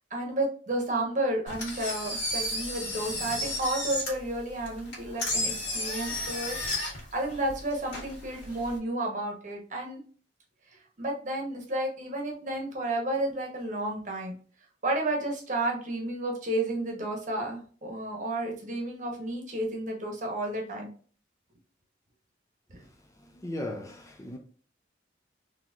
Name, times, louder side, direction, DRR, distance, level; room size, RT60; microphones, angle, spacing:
voice 1, 0.1-10.0 11.0-14.3 14.8-20.9 22.7-22.8, right 1 dB, 40° right, 1.0 m, -32 dB
Engine, 1.5-8.8, left 1 dB, 65° left, 1.8 m, -33 dB
voice 2, 22.8-24.4, left 1 dB, 15° left, 0.4 m, -38 dB
3.9 x 2.9 x 2.4 m
head